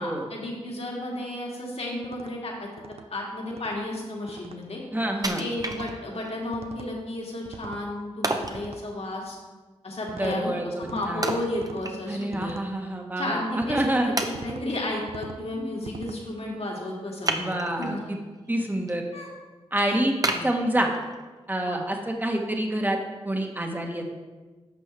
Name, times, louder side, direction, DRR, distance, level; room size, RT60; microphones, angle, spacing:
voice 1, 0.0-2.7 3.1-4.8 5.2-9.4 9.8-12.5 13.2-17.5 17.8-18.1 19.1-19.3 19.9-20.0 20.3-20.5 21.6-21.8, left 1 dB, 60° left, -2 dB, 2.2 m, -33 dB
sound 1, 2.0-2.3 2.8-3.0 3.5-3.8 4.3-4.6 5.6-6.0 6.5-6.9 7.4-7.9 8.4-8.8 10.1-10.4 10.8-11.1 11.5-11.9 12.3-12.7 13.6-13.9 14.3-14.7 15.1-15.4 15.8-16.2, right 4 dB, 65° right, 0.6 m, -42 dB
voice 2, 4.9-5.4 10.1-10.7 11.0-11.3 12.1-14.2 17.3-18.2 18.5-19.0 19.7-20.1 20.4-20.9 21.5-23.0 23.2-24.0, right 1 dB, 15° right, 2 dB, 1.4 m, -27 dB
Wood, 5.2-6.3 6.8-6.9 8.2-8.6 11.2-12.3 12.7-12.8 13.5-13.6 14.2-14.8 17.2-18.0 18.5-18.9 19.3-19.4 20.2-21.2 21.7-21.8, right 2 dB, 30° right, 0.8 m, -31 dB
11.0 x 6.1 x 3.4 m, 1.3 s
cardioid pair, 55°, 12 cm